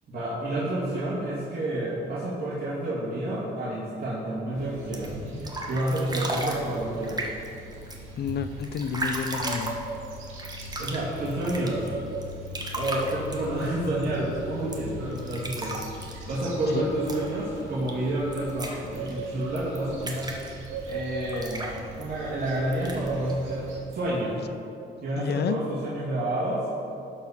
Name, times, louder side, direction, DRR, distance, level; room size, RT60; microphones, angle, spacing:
voice 1, 0.1-5.1 5.7-7.2 10.8-11.9 12.7-15.8 16.3-20.3 20.9-21.7 22.0-23.6 23.9-24.4 25.0-26.8, right 1 dB, 50° right, -8 dB, 2.1 m, -29 dB
sound 1, 4.5-23.8, right 2 dB, 80° right, 2.1 m, -38 dB
sound 2, 4.8-24.4, right 2 dB, 20° right, 1.3 m, -37 dB
voice 2, 8.2-9.8 16.7-16.9 25.2-25.6, left 7 dB, 55° left, 11 dB, 0.5 m, -30 dB
12.5 x 4.3 x 5.7 m, 2.6 s
cardioid pair, 90°, 20 cm